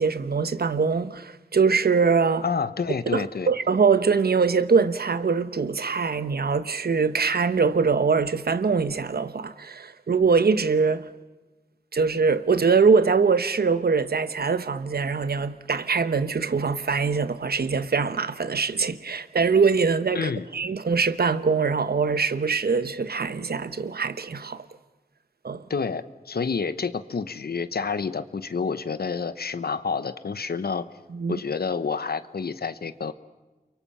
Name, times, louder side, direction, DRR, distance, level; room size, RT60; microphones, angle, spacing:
voice 1, 0.0-2.4 3.1-11.1 11.9-24.6 25.4-25.6 31.1-31.4, right 5 dB, 80° right, 1.0 m, -23 dB
voice 2, 2.4-3.5 20.1-20.5 25.7-30.8 31.3-33.1, left 5 dB, 85° left, 1.0 m, -29 dB
30.0 x 23.5 x 5.7 m
wide cardioid pair, 75°, 16 cm